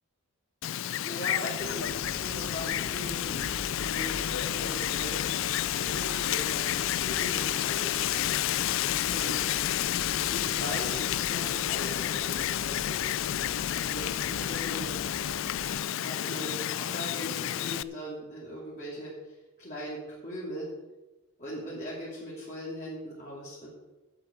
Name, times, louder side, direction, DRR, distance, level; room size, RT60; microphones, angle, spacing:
Wind, 0.6-17.8, left 12 dB, 60° left, 0.3 m, -30 dB
voice 1, 0.7-3.5 3.7-5.2 5.7-8.0 9.0-9.4 10.0-13.0 13.8-14.9 15.5-20.7 21.4-23.7, equal, 35° left, -7 dB, 3.1 m, -40 dB
sound 1, 1.6-15.8, left 4 dB, 80° left, 0.9 m, -41 dB
8.7 x 7.5 x 8.9 m, 1.1 s
head